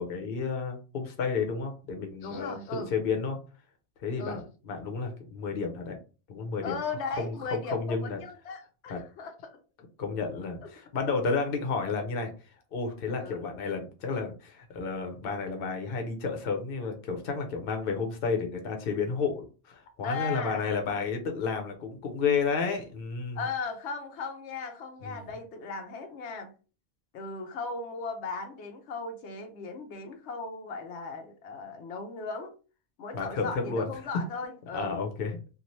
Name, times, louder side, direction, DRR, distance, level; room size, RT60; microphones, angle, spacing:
voice 1, 0.0-3.4 4.0-4.4 4.6-6.0 6.3-6.8 7.2-7.3 7.7-8.2 8.9-9.0 10.0-12.3 12.7-23.4 25.0-25.2 33.1-33.9 34.7-35.4, left 5 dB, 60° left, 0.9 m, -31 dB
voice 2, 2.2-2.9 4.2-4.4 6.6-9.6 10.6-10.7 13.2-13.5 20.0-20.7 23.3-26.5 27.1-32.6 33.0-34.9, left 4 dB, 90° left, 0.9 m, -37 dB
2.7 x 2.5 x 3.0 m
omnidirectional pair, 1.1 m